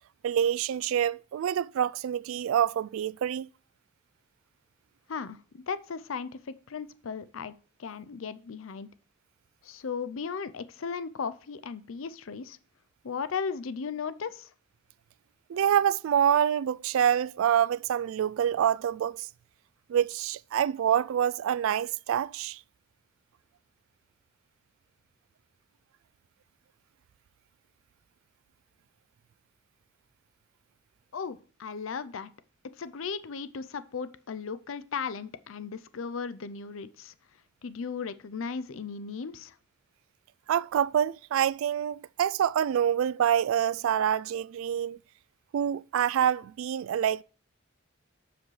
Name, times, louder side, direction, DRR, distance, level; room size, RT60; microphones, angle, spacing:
voice 1, 0.2-3.5 15.5-19.3 19.9-22.6 40.5-45.0 45.5-47.2, right 9 dB, 80° right, 0.3 m, -26 dB
voice 2, 5.1-7.5 7.8-8.9 9.6-12.6 13.0-14.5 31.1-32.3 32.8-37.1 37.6-39.6, left 5 dB, 70° left, 0.5 m, -36 dB
13.5 x 5.0 x 3.1 m
head